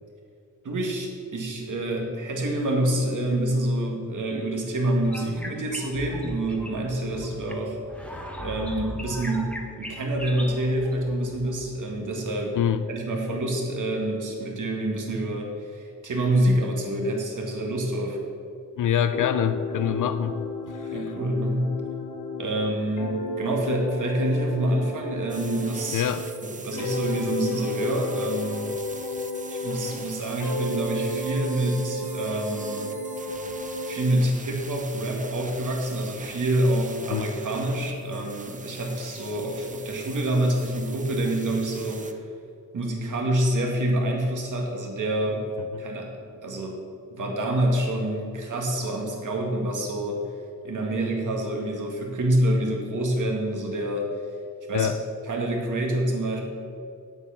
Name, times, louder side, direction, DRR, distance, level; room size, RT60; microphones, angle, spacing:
voice 1, 0.6-7.8 8.3-9.5 9.8-12.6 12.9-18.2 20.8-21.7 22.4-26.1 26.4-28.7 29.5-33.0 33.9-42.2 42.7-45.5 45.8-46.1 46.4-46.8 47.1-50.2 50.6-54.1 54.7-54.9 55.2-56.4, right 1 dB, 70° right, 0 dB, 1.9 m, -27 dB
sound 1, 5.0-11.7, equal, 5° left, 0.9 m, -39 dB
voice 2, 18.8-20.4 20.7-20.8 25.9-26.2 37.1-37.2 45.7-45.8 54.7-54.9, left 9 dB, 70° left, 10 dB, 0.5 m, -24 dB
sound 2, 19.1-26.3 26.7-30.1 30.4-34.1, left 1 dB, 90° left, 1.1 m, -33 dB
sound 3, 25.3-42.1, right 4 dB, 25° right, 0.6 m, -43 dB
8.3 x 8.0 x 5.7 m, 2.4 s
wide cardioid pair, 125°, 32 cm